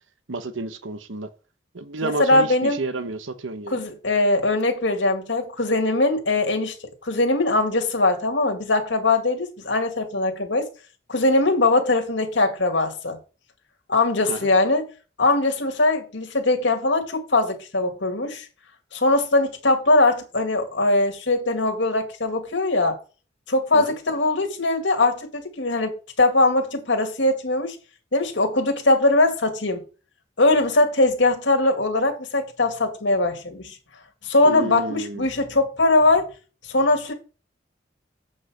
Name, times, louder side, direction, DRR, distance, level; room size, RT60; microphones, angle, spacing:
voice 1, 0.3-1.3 1.7-3.8 14.3-14.5 23.7-23.9 34.4-35.3, right 2 dB, 90° right, 1.0 m, -30 dB
voice 2, 2.0-2.8 3.7-6.7 7.0-10.7 11.1-13.2 13.9-14.8 15.2-18.5 18.9-23.0 23.5-27.8 28.1-29.8 30.4-33.8 34.2-36.3 36.7-37.1, left 2 dB, 70° left, 2.2 m, -21 dB
8.1 x 5.5 x 6.4 m
head